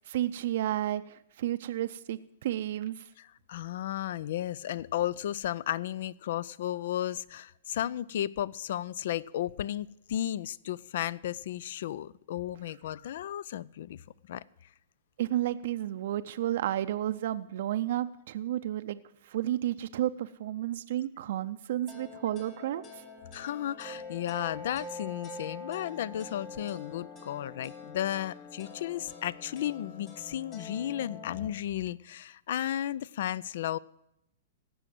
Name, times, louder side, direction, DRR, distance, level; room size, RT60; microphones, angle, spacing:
voice 1, 0.1-3.1 15.2-22.9, right 12 dB, 65° right, 10 dB, 0.5 m, -32 dB
voice 2, 3.2-14.0 14.3-14.4 23.3-33.8, left 12 dB, 65° left, 23 dB, 0.4 m, -34 dB
sound 1, 21.9-31.5, left 3 dB, 30° left, 3.7 m, -45 dB
17.0 x 6.2 x 7.6 m, 0.83 s
hypercardioid pair, 140°, 0 cm